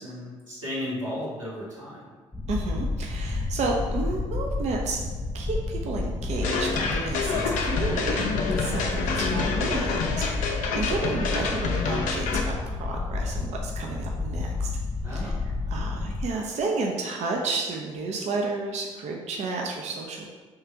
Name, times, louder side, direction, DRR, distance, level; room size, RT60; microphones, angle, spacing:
voice 1, 0.0-2.0 15.0-15.4, left 1 dB, 90° right, -10 dB, 1.2 m, -34 dB
sound 1, 2.3-16.3, left 3 dB, 10° left, 0.4 m, -30 dB
voice 2, 2.5-5.0 5.3-14.7 15.1-15.4 15.7-20.3, right 3 dB, 45° right, 0 dB, 0.6 m, -31 dB
sound 2, 6.4-12.4, left 4 dB, 55° left, 0.6 m, -28 dB
3.2 x 3.1 x 4.6 m, 1.4 s
figure-of-eight pair, 45°, 16 cm